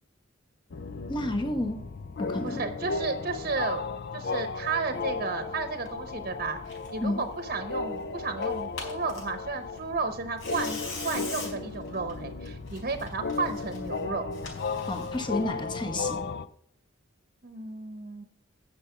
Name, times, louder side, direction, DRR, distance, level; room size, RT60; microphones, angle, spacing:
sound 1, 0.7-16.5, left 4 dB, 55° left, 0.5 m, -35 dB
voice 1, 1.1-1.8 2.2-2.6 7.0-7.2 14.8-16.2, left 1 dB, 25° left, 4 dB, 1.3 m, -30 dB
voice 2, 2.4-3.8 4.1-14.3 17.4-18.2, right 4 dB, 45° right, 7 dB, 0.9 m, -33 dB
Tearing, 5.8-15.4, left 3 dB, 80° left, 4.6 m, -44 dB
10.5 x 6.7 x 5.8 m, 0.67 s
head